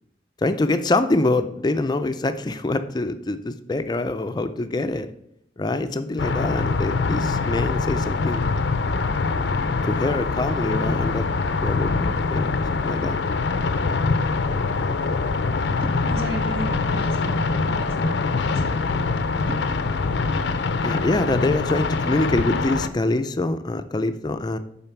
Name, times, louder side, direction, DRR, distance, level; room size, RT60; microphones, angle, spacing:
voice 1, 0.4-5.1 5.6-8.5 8.9-9.0 9.8-11.3 11.6-11.9 12.3-13.2 20.8-24.6, left 2 dB, 25° left, 10 dB, 0.4 m, -25 dB
sound 1, 6.2-22.9, left 4 dB, 90° left, 0.5 m, -24 dB
voice 2, 15.8-19.1 19.5-19.6, right 1 dB, 65° right, 3 dB, 1.6 m, -35 dB
8.8 x 4.3 x 5.8 m, 0.77 s
head